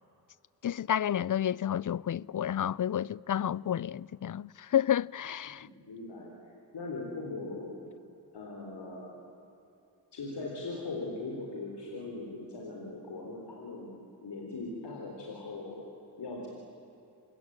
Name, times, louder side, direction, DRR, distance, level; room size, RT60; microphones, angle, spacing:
voice 1, 0.6-5.7, left 10 dB, 50° left, 0.5 m, -30 dB
voice 2, 5.6-7.9 8.3-9.2 10.1-15.8 16.2-16.5, left 3 dB, 90° left, 3.9 m, -40 dB
27.5 x 21.5 x 8.8 m
cardioid pair, 45°, 40 cm